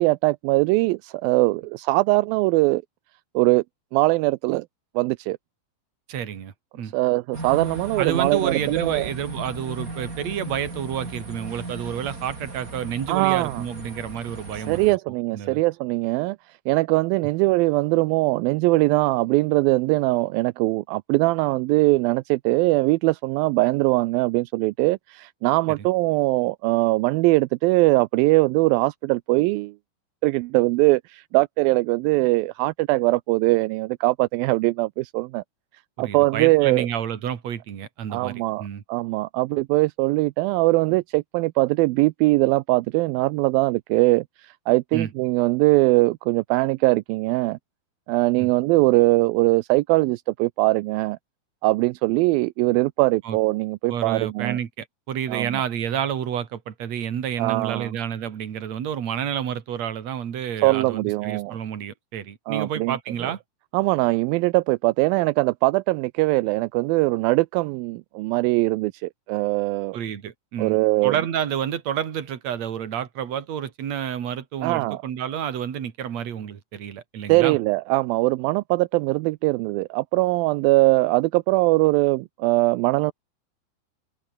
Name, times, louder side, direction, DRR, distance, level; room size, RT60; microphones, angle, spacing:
voice 1, 0.0-2.8 3.4-3.6 3.9-4.7 5.0-5.4 6.9-9.1 13.1-13.6 14.7-16.4 16.7-29.7 30.2-35.4 36.0-36.9 38.1-47.6 48.1-51.2 51.6-54.6 55.3-55.6 57.4-58.0 60.6-61.6 62.5-63.0 63.7-70.0 70.6-71.2 74.6-75.0 77.3-83.1, right 21 dB, 85° right, 2.1 m, -21 dB
voice 2, 6.1-6.9 8.0-14.8 15.3-15.6 36.0-38.8 44.9-45.1 48.4-48.5 53.2-53.4 53.9-63.4 69.9-70.8 71.0-77.6, right 9 dB, 50° right, 3.0 m, -29 dB
sound 1, 7.3-15.0, right 2 dB, 20° right, 4.7 m, -36 dB
open air
omnidirectional pair, 4.7 m